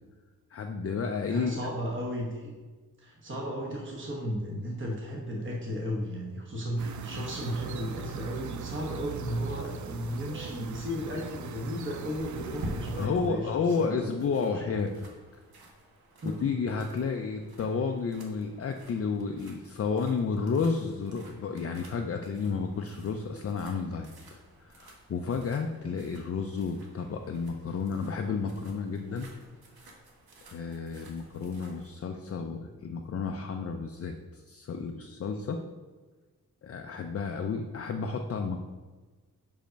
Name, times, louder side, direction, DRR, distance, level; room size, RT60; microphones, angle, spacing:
voice 1, 0.5-1.6 13.0-14.9 16.2-24.4 24.6-29.3 30.5-35.6 36.6-38.6, left 5 dB, 40° left, 4 dB, 0.4 m, -31 dB
voice 2, 1.2-2.6 3.0-14.5 16.2-16.6, equal, 35° right, -2 dB, 1.1 m, -35 dB
sound 1, 6.8-13.1, right 6 dB, 55° right, 0.5 m, -40 dB
sound 2, 12.1-31.9, right 1 dB, 80° right, 1.3 m, -48 dB
5.6 x 5.2 x 5.1 m, 1.3 s
wide cardioid pair, 150°, 36 cm